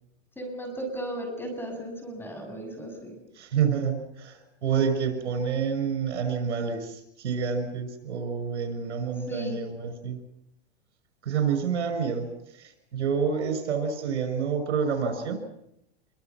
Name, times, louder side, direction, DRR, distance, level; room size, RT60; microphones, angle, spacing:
voice 1, 0.4-3.2 9.3-9.6, right 1 dB, 5° left, 4 dB, 7.1 m, -35 dB
voice 2, 3.4-10.2 11.2-12.3 12.6-15.4, right 6 dB, 85° right, 8 dB, 6.3 m, -28 dB
26.0 x 24.5 x 6.0 m, 0.79 s
hypercardioid pair, 130°, 34 cm